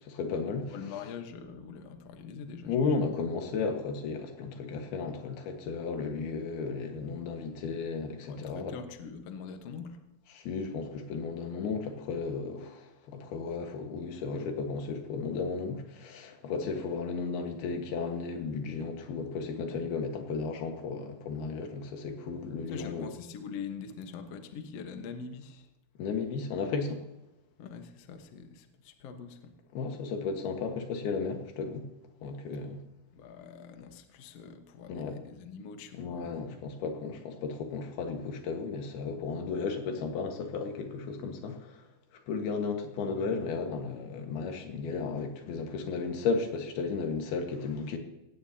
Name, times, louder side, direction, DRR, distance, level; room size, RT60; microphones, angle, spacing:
voice 1, 0.0-0.7 2.7-8.7 10.3-23.1 26.0-27.0 29.7-31.9 32.2-32.8 34.9-35.2 36.0-41.9 42.3-48.0, left 4 dB, 80° left, 3.5 m, -34 dB
voice 2, 0.6-3.1 8.2-10.0 22.7-25.7 27.6-29.5 33.1-36.6 43.0-43.4, left 6 dB, 60° left, 1.7 m, -44 dB
18.0 x 16.5 x 2.9 m
omnidirectional pair, 4.5 m